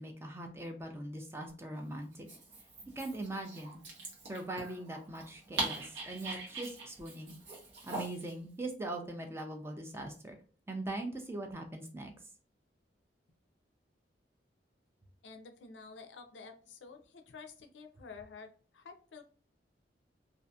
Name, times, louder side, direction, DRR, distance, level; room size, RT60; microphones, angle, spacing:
voice 1, 0.0-2.3 3.0-3.8 4.2-7.3 7.8-10.4 10.7-12.1, right 2 dB, 15° right, 4 dB, 0.4 m, -41 dB
Dog, 2.1-8.3, right 3 dB, 80° right, 1.0 m, -42 dB
voice 2, 15.2-19.2, left 4 dB, 80° left, 5 dB, 0.4 m, -50 dB
2.6 x 2.4 x 2.2 m, 0.40 s
head